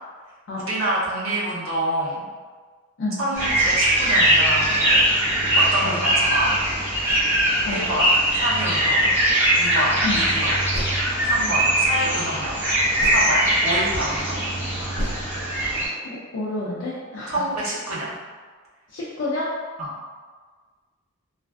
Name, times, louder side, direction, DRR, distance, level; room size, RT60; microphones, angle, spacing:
voice 1, 0.6-2.2 3.2-5.1 5.6-6.5 7.6-9.1 9.6-10.5 11.2-12.6 13.0-14.4 17.3-18.1 19.8-19.9, right 1 dB, 80° right, -7 dB, 0.7 m, -26 dB
sound 1, 3.3-15.9, right 1 dB, 10° right, 0.8 m, -21 dB
sound 2, 10.0-10.3 10.7-11.6 12.5-12.6 13.0-13.4 14.3-14.6 14.9-15.2, equal, 40° right, 1.4 m, -31 dB
voice 2, 16.0-17.4 18.9-19.5, left 2 dB, 60° left, -8 dB, 0.4 m, -29 dB
2.5 x 2.3 x 2.2 m, 1.5 s
head